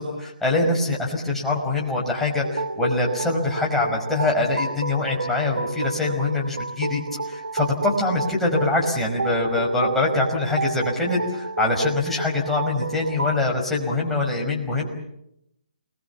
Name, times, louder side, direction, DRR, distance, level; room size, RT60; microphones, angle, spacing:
voice 1, 0.0-7.0 7.3-14.9, left 2 dB, 5° left, -3 dB, 5.3 m, -24 dB
sound 1, 2.4-13.4, right 3 dB, 85° right, 1.5 m, -31 dB
29.0 x 22.0 x 7.2 m, 0.82 s
hypercardioid pair, 155°, 5 cm